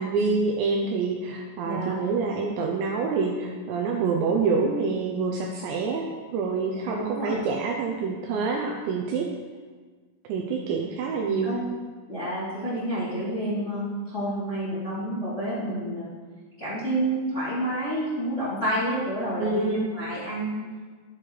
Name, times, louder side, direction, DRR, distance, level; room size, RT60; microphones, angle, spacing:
voice 1, 0.0-9.3 10.3-11.5 19.4-19.9, right 4 dB, 80° right, 1 dB, 2.7 m, -27 dB
voice 2, 1.6-2.0 6.9-7.5 11.4-11.7 12.1-16.1 16.6-20.6, right 1 dB, 20° left, -11 dB, 2.3 m, -29 dB
13.0 x 8.7 x 3.3 m, 1.5 s
omnidirectional pair, 5.7 m